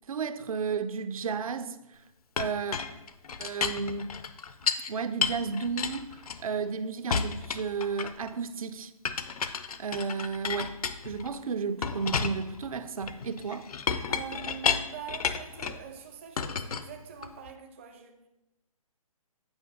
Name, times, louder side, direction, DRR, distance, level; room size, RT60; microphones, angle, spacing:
voice 1, 0.1-1.8 2.4-2.8 3.4-4.1 4.9-6.1 6.4-8.9 9.8-10.8 11.0-13.7, right 5 dB, 65° right, 0.7 m, -32 dB
Chink clink, 2.4-4.9 5.2-6.7 7.1-8.3 9.0-11.3 11.8-15.8 16.4-17.5, left 6 dB, 75° left, 0.7 m, -32 dB
voice 2, 14.1-18.3, right 8 dB, 20° right, 0.5 m, -44 dB
8.9 x 4.8 x 5.4 m
hypercardioid pair, 170°, 19 cm